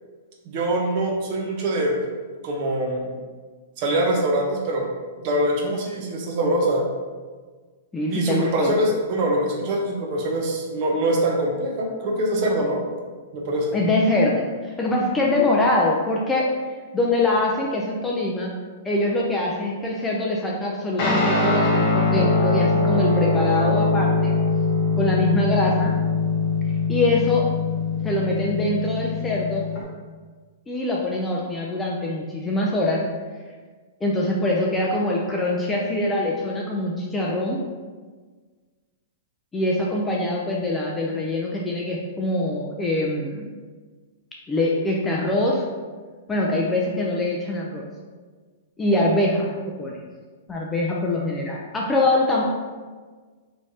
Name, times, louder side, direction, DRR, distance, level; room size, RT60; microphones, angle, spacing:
voice 1, 0.5-1.9 2.4-3.0 3.8-4.8 5.2-6.8 8.1-12.8 13.3-13.8, right 1 dB, 35° right, 0 dB, 0.7 m, -23 dB
voice 2, 7.9-8.7 13.7-16.5 16.9-18.5 18.8-24.4 25.0-26.0 26.9-27.5 28.0-29.7 30.7-33.0 34.0-37.6 39.5-43.5 44.5-45.6 46.3-47.9 48.8-49.5 49.8-50.0 50.5-52.4, left 2 dB, 10° left, -3 dB, 0.3 m, -23 dB
Guitar, 21.0-29.8, left 3 dB, 30° left, 0.9 m, -22 dB
4.9 x 3.1 x 2.7 m, 1.5 s
hypercardioid pair, 170°, 0 cm